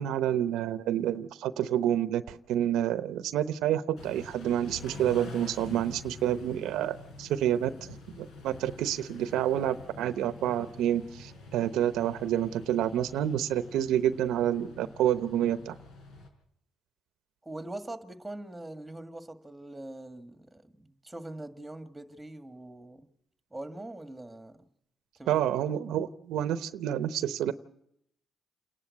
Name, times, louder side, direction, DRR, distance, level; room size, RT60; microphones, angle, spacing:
voice 1, 0.0-15.8 25.3-27.5, right 11 dB, 90° right, 0.8 m, -28 dB
Car / Idling / Accelerating revving vroom, 4.0-16.3, left 3 dB, 80° left, 4.4 m, -47 dB
voice 2, 17.4-23.1 23.5-24.7 25.2-25.4 25.8-25.9, right 1 dB, 10° right, 1.8 m, -43 dB
28.5 x 11.0 x 8.5 m
cardioid pair, 90°, 0 cm